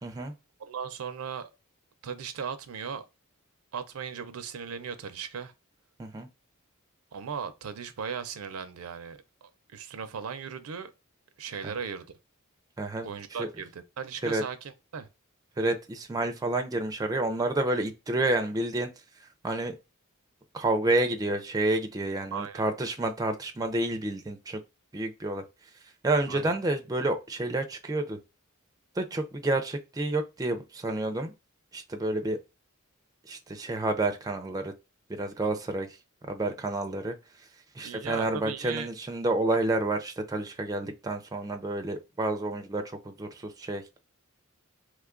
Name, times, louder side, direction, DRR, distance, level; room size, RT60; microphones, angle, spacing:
voice 1, 0.0-0.3 6.0-6.3 11.6-11.7 12.8-13.1 13.4-13.5 14.2-14.4 15.6-18.9 19.4-19.8 20.5-24.6 24.9-25.4 26.0-28.2 29.0-31.3 31.7-32.4 33.3-34.7 35.1-35.9 36.3-37.2 37.8-43.8, right 2 dB, 15° right, 0.4 m, -29 dB
voice 2, 0.7-1.5 2.0-3.1 3.7-5.5 7.1-10.9 11.4-12.1 13.0-15.1 22.3-22.6 26.3-26.5 37.8-38.9, right 6 dB, 80° right, 0.5 m, -37 dB
3.1 x 2.3 x 3.6 m
head